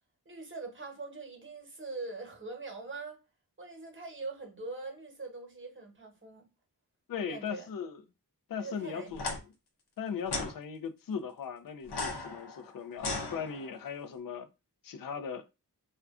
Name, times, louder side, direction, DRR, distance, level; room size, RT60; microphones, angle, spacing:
voice 1, 0.2-3.2 3.6-6.5 7.2-7.7 8.6-9.1, right 3 dB, 30° right, 1.0 m, -42 dB
voice 2, 7.1-8.0 8.5-9.2 10.0-14.5 14.8-15.5, left 6 dB, 60° left, 0.5 m, -38 dB
sound 1, 9.1-9.4 10.3-10.5 11.8-13.9, left 3 dB, 85° left, 0.7 m, -36 dB
2.3 x 2.2 x 3.6 m
wide cardioid pair, 85°, 39 cm